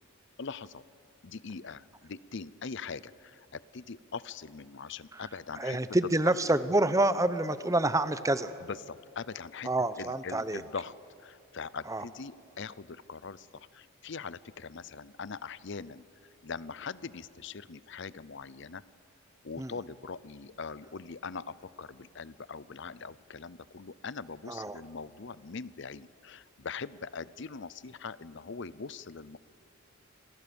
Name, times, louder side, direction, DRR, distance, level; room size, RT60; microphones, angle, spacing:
voice 1, 0.4-0.8 1.2-5.8 8.6-9.7 10.0-10.9 11.2-16.0 16.4-18.8 19.4-29.4, left 5 dB, 55° left, 18 dB, 0.6 m, -42 dB
voice 2, 5.6-8.5 9.7-10.6 11.9-12.0 19.6-19.7 24.5-24.8, right 2 dB, 15° right, 13 dB, 0.8 m, -27 dB
28.5 x 26.0 x 7.0 m, 2.4 s
head